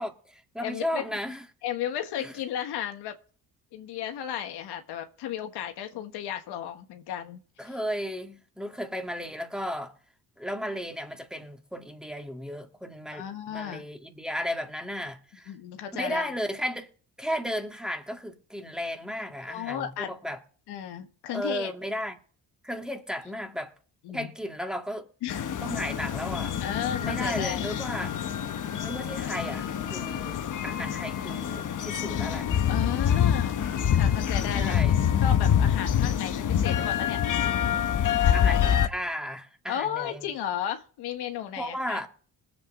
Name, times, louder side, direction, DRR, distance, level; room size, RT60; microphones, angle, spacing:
voice 1, 0.0-1.4 2.2-2.3 7.6-9.9 10.4-15.5 16.0-16.9 17.2-20.4 21.3-22.1 22.6-23.7 24.1-25.1 25.6-26.6 27.0-28.2 28.8-32.5 34.5-34.9 38.3-40.3 41.6-42.1, equal, ahead, 2.0 m, -34 dB
voice 2, 0.6-1.0 1.6-3.1 3.7-7.7 13.1-13.8 15.5-16.3 19.5-20.1 20.7-21.7 24.0-24.3 25.2-25.5 26.6-27.6 27.9-28.3 32.7-34.7 35.2-37.2 38.2-38.7 39.7-42.1, left 10 dB, 80° left, 1.5 m, -34 dB
sound 1, 25.3-38.9, left 9 dB, 50° left, 1.1 m, -26 dB
20.5 x 8.1 x 3.7 m
cardioid pair, 80°, 39 cm